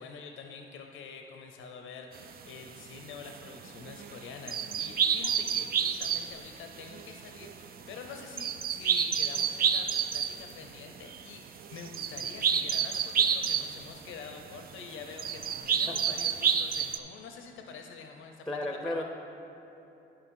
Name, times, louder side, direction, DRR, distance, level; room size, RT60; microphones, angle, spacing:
voice 1, 0.0-18.5 18.8-19.0, left 5 dB, 80° left, 4 dB, 0.7 m, -46 dB
sound 1, 2.1-2.2 2.7-2.8 3.2-6.4 6.7-14.1 14.5-14.8 15.1-17.0, right 7 dB, 50° right, 0.5 m, -29 dB
voice 2, 18.5-19.0, left 1 dB, ahead, 3 dB, 0.7 m, -34 dB
9.9 x 5.3 x 5.5 m, 3.0 s
cardioid pair, 90°, 20 cm